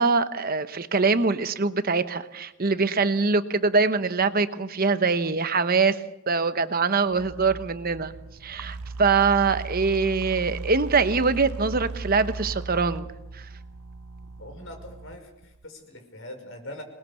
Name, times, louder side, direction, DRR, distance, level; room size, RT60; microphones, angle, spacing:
voice 1, 0.0-8.1 8.4-13.1 13.3-13.5, right 4 dB, 40° right, 11 dB, 0.9 m, -23 dB
sound 1, 7.0-15.7, right 3 dB, 75° right, 0.8 m, -37 dB
voice 2, 14.4-16.8, left 1 dB, 60° left, 5 dB, 5.5 m, -42 dB
26.5 x 20.5 x 7.0 m, 0.93 s
head